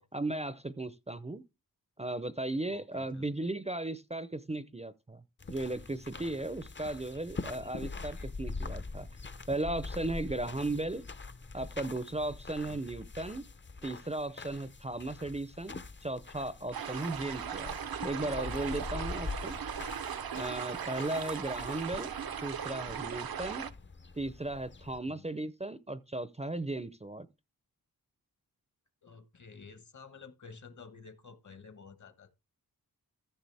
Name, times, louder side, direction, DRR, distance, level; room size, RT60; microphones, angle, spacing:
voice 1, 0.1-1.4 2.0-5.2 5.5-9.1 9.5-11.0 11.5-13.5 13.8-17.7 18.0-19.6 20.3-22.1 22.4-23.6 24.2-27.3, right 2 dB, 20° right, 0.5 m, -36 dB
voice 2, 2.7-3.3 8.1-8.3 10.3-10.4 12.6-12.8 20.6-20.9 23.6-23.7 25.0-25.2 29.0-32.3, left 5 dB, 50° left, 1.3 m, -52 dB
sound 1, 5.4-25.0, left 3 dB, 30° left, 0.7 m, -44 dB
sound 2, 16.7-23.7, right 8 dB, 75° right, 0.7 m, -38 dB
14.5 x 6.6 x 3.4 m
wide cardioid pair, 110°, 36 cm